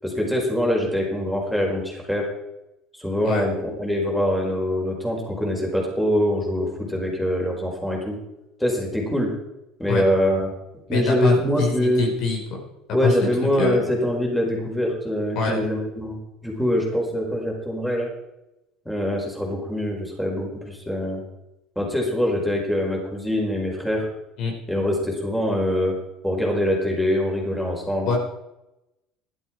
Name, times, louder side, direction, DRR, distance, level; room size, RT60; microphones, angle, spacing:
voice 1, 0.0-2.2 2.9-8.2 8.6-9.3 9.8-10.5 10.9-12.1 12.9-18.1 18.8-21.2 21.7-24.1 24.7-25.9 26.2-28.1, equal, ahead, -1 dB, 5.0 m, -24 dB
voice 2, 10.9-12.4 13.0-13.1 13.6-13.8 15.3-15.6 24.4-24.5 28.0-28.2, left 4 dB, 60° left, 1 dB, 4.6 m, -24 dB
15.5 x 12.0 x 4.7 m, 0.92 s
supercardioid pair, 120°, 0 cm